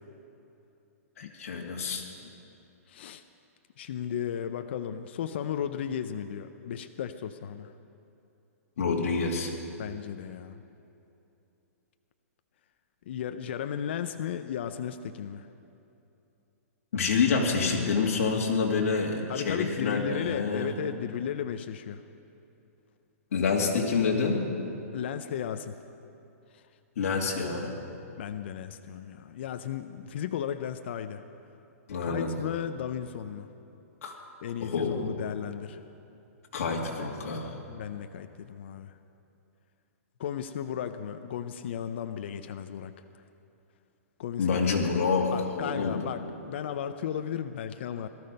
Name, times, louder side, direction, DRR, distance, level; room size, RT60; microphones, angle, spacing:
voice 1, 1.2-2.0 8.8-9.5 16.9-20.7 23.3-24.4 27.0-27.7 31.9-32.3 34.0-34.1 34.6-35.2 36.5-37.6 44.4-46.1, left 5 dB, 60° left, -1 dB, 2.6 m, -27 dB
voice 2, 2.9-3.2 3.8-7.7 9.8-10.6 13.1-15.5 19.3-22.0 24.9-25.7 26.5-26.6 28.2-31.2 32.0-33.5 34.4-35.8 37.7-38.9 40.2-43.0 44.2-44.5 45.3-48.1, left 9 dB, 45° left, 9 dB, 0.5 m, -35 dB
18.5 x 13.0 x 5.4 m, 2.8 s
hypercardioid pair, 170°, 8 cm